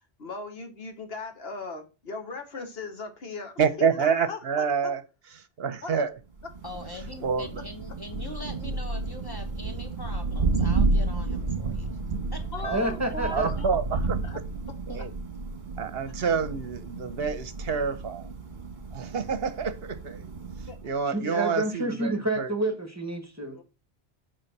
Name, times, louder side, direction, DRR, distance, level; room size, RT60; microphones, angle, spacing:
voice 1, 0.2-4.9 5.8-5.9 12.5-13.7 14.2-14.4 20.7-20.8 23.5-23.6, left 3 dB, 65° left, 1.5 m, -38 dB
voice 2, 3.6-5.0 5.6-6.1 7.2-7.6 12.6-12.9 13.3-14.4 14.9-15.1 15.8-18.3 18.9-20.3 20.6-22.5, right 6 dB, 65° right, 0.9 m, -28 dB
Thunder, 6.4-21.0, right 3 dB, 45° right, 1.3 m, -31 dB
voice 3, 6.6-12.0 12.3-12.9 14.9-15.1, left 1 dB, 20° left, 1.4 m, -42 dB
voice 4, 12.7-13.5 21.1-23.6, right 1 dB, 15° right, 1.4 m, -29 dB
7.9 x 3.8 x 5.9 m
omnidirectional pair, 1.1 m